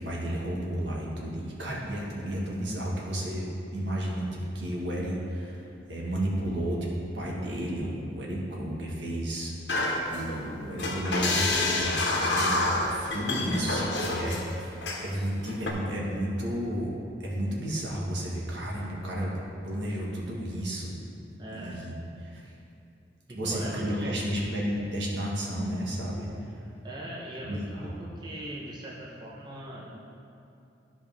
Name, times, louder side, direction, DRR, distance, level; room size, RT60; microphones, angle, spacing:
voice 1, 0.0-3.5 3.7-5.6 5.9-6.9 7.1-9.5 10.1-16.9 17.2-19.4 19.6-20.9 21.5-21.9 22.2-22.5 23.3-26.6 27.4-27.9, equal, 80° right, -3 dB, 1.5 m, -32 dB
sound 1, 9.7-10.5 10.8-14.4 14.8-15.1 15.5-15.7, left 2 dB, 75° left, 1.1 m, -28 dB
voice 2, 13.3-13.7 21.4-21.8 23.3-24.2 26.8-30.0, right 1 dB, 25° right, -4 dB, 0.8 m, -40 dB
13.0 x 5.0 x 3.5 m, 2.6 s
head